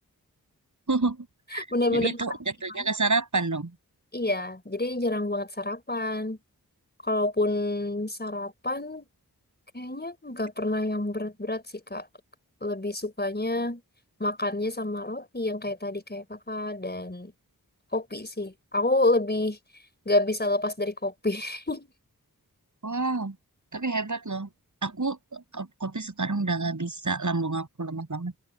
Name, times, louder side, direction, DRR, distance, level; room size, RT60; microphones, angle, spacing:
voice 1, 0.9-1.3 1.5-3.7 22.8-23.4 23.7-24.5 24.8-28.3, right 3 dB, 55° right, 7.5 m, -29 dB
voice 2, 1.5-2.2 2.8-2.9 4.1-6.4 7.0-9.1 9.7-12.1 12.6-13.8 14.2-17.3 17.9-19.6 20.0-21.9, left 2 dB, 30° left, 4.6 m, -28 dB
wide cardioid pair, 70°, 36 cm